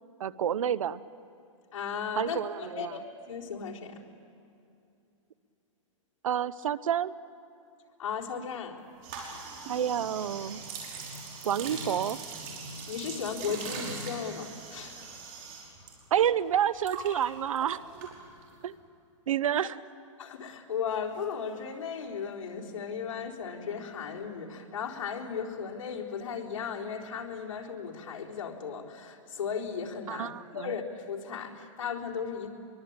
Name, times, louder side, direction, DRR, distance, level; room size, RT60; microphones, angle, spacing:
voice 1, 0.2-1.0 2.2-2.9 6.2-7.1 9.6-10.6 11.4-12.2 16.1-17.8 18.6-18.7 19.3-19.8 30.1-30.7, right 9 dB, 85° right, 18 dB, 0.8 m, -29 dB
voice 2, 1.7-3.0 3.3-4.0 8.0-8.8 9.1-9.4 12.9-15.3 20.2-32.5, left 6 dB, 75° left, -3 dB, 4.1 m, -36 dB
sound 1, 9.0-18.6, right 4 dB, 35° right, 5.3 m, -41 dB
23.5 x 23.0 x 8.8 m, 2.6 s
hypercardioid pair, 155°, 17 cm